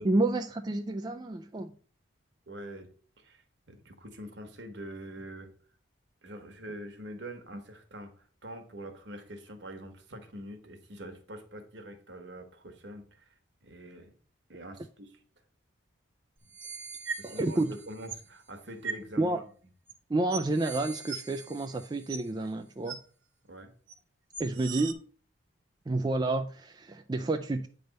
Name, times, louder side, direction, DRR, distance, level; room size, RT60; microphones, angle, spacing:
voice 1, 0.0-1.7 17.2-17.7 19.2-19.4 20.1-23.0 24.4-25.0 25.9-27.7, right 2 dB, 20° right, 0.3 m, -29 dB
voice 2, 2.5-5.5 6.2-14.1 14.5-15.2 17.2-19.4 23.5-23.7, right 1 dB, 60° right, 1.2 m, -45 dB
sound 1, 16.4-18.3 18.8-19.0 19.9-20.0 20.3-22.5 22.9-23.0 23.9-24.0 24.3-24.9, right 5 dB, 75° right, 1.4 m, -40 dB
9.0 x 3.4 x 5.3 m
head